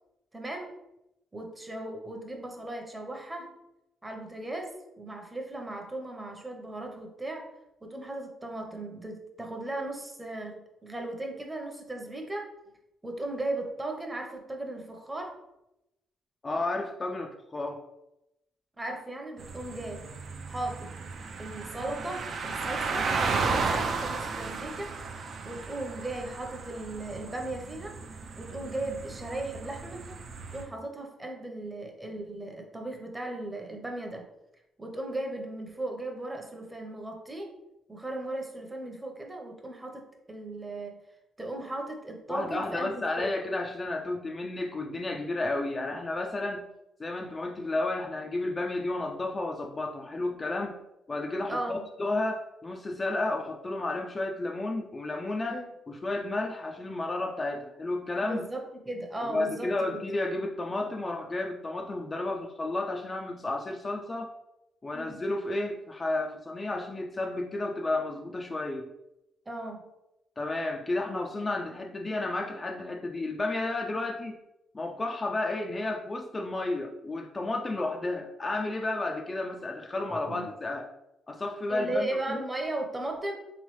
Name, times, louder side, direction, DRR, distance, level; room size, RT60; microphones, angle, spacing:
voice 1, 0.3-0.8 1.3-3.5 4.0-7.5 7.8-12.5 13.0-15.4 18.8-20.1 20.5-20.9 21.4-25.0 25.4-28.0 28.4-30.2 30.5-34.3 34.8-37.5 37.9-41.0 41.4-43.4 51.5-51.8 55.5-55.6 58.2-60.0 64.9-65.2 69.5-69.9 80.3-80.5 81.7-83.3, right 2 dB, 15° right, 2 dB, 0.8 m, -37 dB
voice 2, 16.4-17.8 42.3-46.7 47.0-50.8 51.1-55.6 55.9-58.4 59.2-64.3 64.8-68.9 70.4-74.4 74.7-80.9 81.3-82.4, left 2 dB, 25° left, 2 dB, 0.4 m, -32 dB
sound 1, 19.4-30.6, right 4 dB, 55° right, 0.5 m, -34 dB
3.5 x 3.1 x 3.1 m, 0.88 s
cardioid pair, 90°, 0 cm